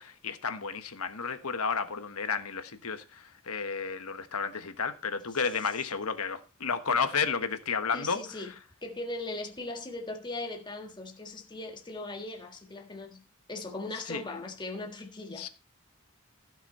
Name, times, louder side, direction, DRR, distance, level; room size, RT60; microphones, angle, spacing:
voice 1, 0.0-8.2 14.1-14.2 15.4-15.5, left 5 dB, 80° left, 1.3 m, -32 dB
voice 2, 7.9-8.5 8.8-13.2 13.5-15.5, left 2 dB, 20° left, 1.6 m, -39 dB
16.0 x 6.0 x 4.2 m
head